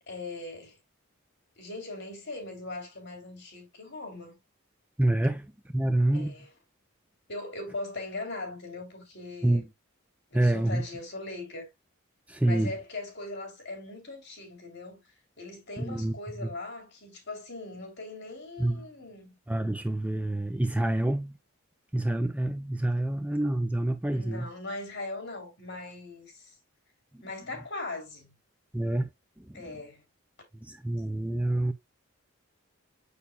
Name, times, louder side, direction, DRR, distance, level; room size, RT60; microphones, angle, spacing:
voice 1, 0.1-0.8 1.6-4.4 6.1-6.5 7.3-9.6 10.3-11.7 12.4-15.0 15.4-19.4 24.1-26.5 27.2-28.3 29.5-30.0, left 2 dB, 50° left, 3.2 m, -40 dB
voice 2, 5.0-6.4 9.4-9.6 10.3-10.8 12.3-12.7 15.8-16.1 16.4-16.5 18.6-18.8 19.5-21.4 21.9-24.5 28.7-29.1 29.4-29.6 30.5-31.7, right 1 dB, 5° right, 0.4 m, -27 dB
6.8 x 6.5 x 2.3 m
head